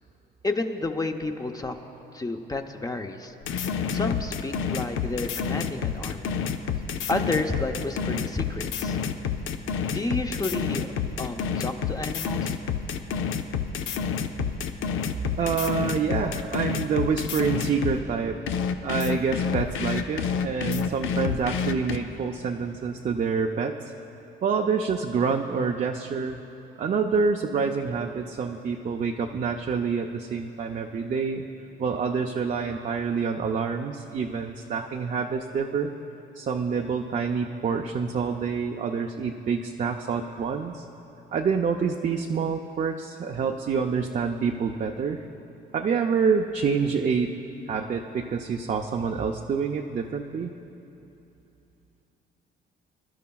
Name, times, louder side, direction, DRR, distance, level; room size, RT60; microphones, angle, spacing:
voice 1, 0.4-1.8 2.1-3.3 3.9-6.4 7.1-9.0 9.9-10.9 11.2-12.5, left 2 dB, 20° left, 5 dB, 0.7 m, -31 dB
sound 1, 3.4-18.0 18.5-22.0, left 7 dB, 90° left, 0.5 m, -28 dB
voice 2, 15.4-18.4 18.8-23.8 24.4-26.4 26.8-31.5 31.8-35.9 36.4-40.8 41.3-45.2 45.7-47.3 47.7-50.5, right 5 dB, 40° right, 2 dB, 0.5 m, -27 dB
22.5 x 11.5 x 2.3 m, 2.9 s
cardioid pair, 90°, 20 cm